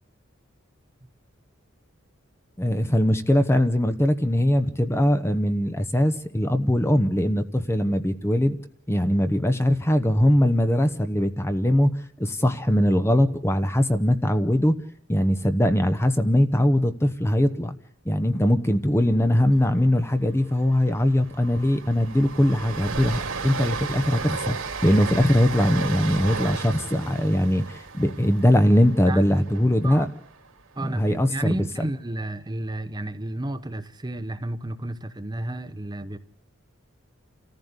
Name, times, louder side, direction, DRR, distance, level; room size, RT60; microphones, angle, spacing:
voice 1, 2.6-8.6 8.9-11.9 12.2-14.7 15.1-17.7 18.0-24.6 24.8-30.1 30.8-31.6, left 1 dB, 10° left, 0.9 m, -21 dB
Train, 19.4-19.6 19.9-20.1 20.4-30.6, right 4 dB, 90° right, 2.7 m, -34 dB
voice 2, 30.8-36.2, right 1 dB, 20° right, 0.9 m, -32 dB
28.5 x 14.5 x 8.1 m
head